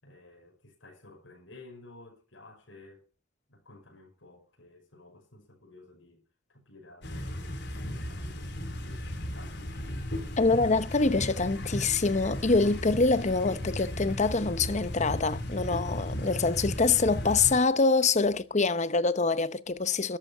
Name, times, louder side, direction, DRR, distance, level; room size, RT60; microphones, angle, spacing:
voice 1, 0.0-3.1 3.5-6.2 6.5-9.9, left 2 dB, 80° left, 5.7 m, -53 dB
sound 1, 7.0-17.6, equal, 65° left, 4.1 m, -35 dB
voice 2, 10.4-20.2, left 3 dB, 40° left, 0.9 m, -25 dB
13.5 x 12.0 x 5.6 m
head